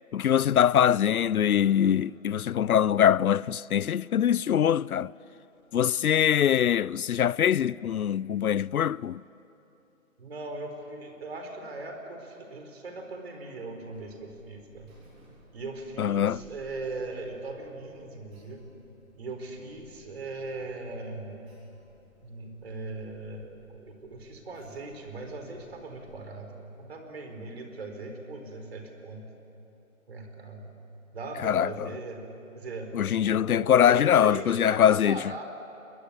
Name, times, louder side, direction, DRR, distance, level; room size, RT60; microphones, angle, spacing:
voice 1, 0.1-5.1 5.7-9.2 16.0-16.4 31.4-31.9 32.9-35.2, left 9 dB, 85° left, 0.6 m, -23 dB
voice 2, 10.2-14.9 15.5-18.6 19.1-21.4 22.2-29.2 30.1-30.7 31.1-32.2 32.5-32.9 33.2-35.4, right 3 dB, 45° right, 4.3 m, -39 dB
Alarm, 13.9-26.3, equal, 15° right, 3.9 m, -59 dB
28.5 x 22.5 x 8.4 m
hypercardioid pair, 165°, 42 cm